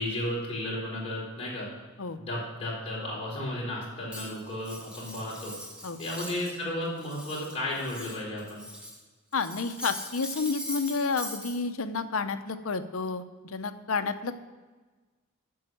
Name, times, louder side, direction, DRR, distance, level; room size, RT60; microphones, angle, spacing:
voice 1, 0.0-1.7 2.2-5.5 6.0-8.6, left 1 dB, 30° left, -5 dB, 4.3 m, -33 dB
Cutlery silverware, 4.1-6.6 6.8-9.0 9.3-11.6, left 1 dB, 5° right, 2.1 m, -41 dB
voice 2, 9.3-14.4, left 4 dB, 70° left, 9 dB, 0.7 m, -30 dB
9.4 x 7.1 x 7.6 m, 1.3 s
head